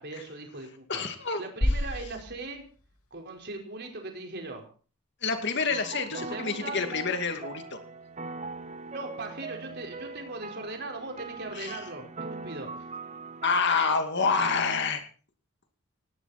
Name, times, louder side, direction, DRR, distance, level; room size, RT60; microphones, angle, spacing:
voice 1, 0.0-1.0 1.4-2.6 3.1-4.7 6.1-6.8 8.9-12.9, right 2 dB, 50° right, 2 dB, 4.8 m, -39 dB
voice 2, 0.9-1.4 5.2-7.8 11.6-11.8 13.4-15.0, left 4 dB, 50° left, 6 dB, 2.5 m, -27 dB
sound 1, 1.6-3.7, left 1 dB, 80° left, 2.6 m, -31 dB
sound 2, 5.7-13.6, right 3 dB, 30° right, 1.1 m, -41 dB
19.0 x 17.5 x 4.4 m, 0.40 s
head